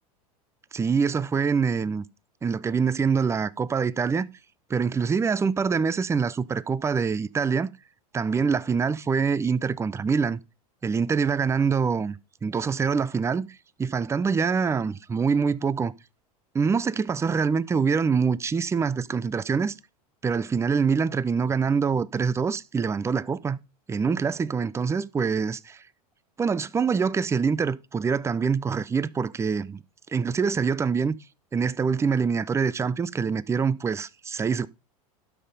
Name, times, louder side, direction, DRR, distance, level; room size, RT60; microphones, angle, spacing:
voice 1, 0.7-2.0 2.4-4.3 4.7-7.7 8.1-10.4 10.8-12.2 12.4-13.5 13.8-15.9 16.5-19.7 20.2-23.6 23.9-25.8 26.4-29.8 30.1-31.2 31.5-34.7, right 5 dB, 15° right, 0.5 m, -25 dB
12.0 x 5.6 x 5.1 m
hypercardioid pair, 100°, 19 cm